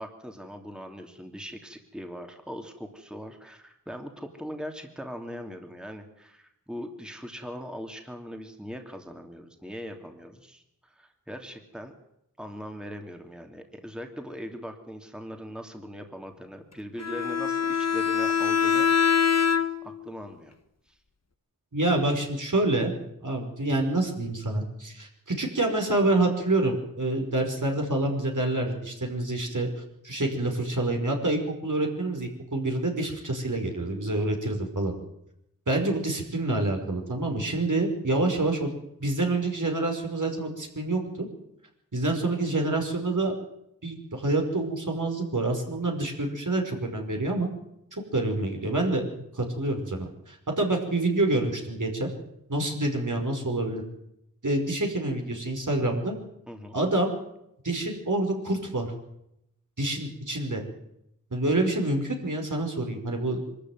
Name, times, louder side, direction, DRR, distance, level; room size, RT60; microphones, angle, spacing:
voice 1, 0.0-11.9 12.4-18.9 19.8-20.5 56.5-56.8, equal, ahead, 4 dB, 2.9 m, -40 dB
Bowed string instrument, 17.0-20.0, left 7 dB, 50° left, 1.4 m, -24 dB
voice 2, 21.7-22.9 23.2-29.7 30.0-34.9 35.7-38.7 39.0-41.3 41.9-43.3 43.8-47.5 48.1-49.0 49.3-52.1 52.5-53.8 54.4-56.2 56.7-57.1 57.6-58.9 59.8-60.7 61.3-63.6, right 2 dB, 60° right, 2 dB, 5.4 m, -27 dB
24.0 x 13.5 x 9.4 m, 0.81 s
wide cardioid pair, 50°, 34 cm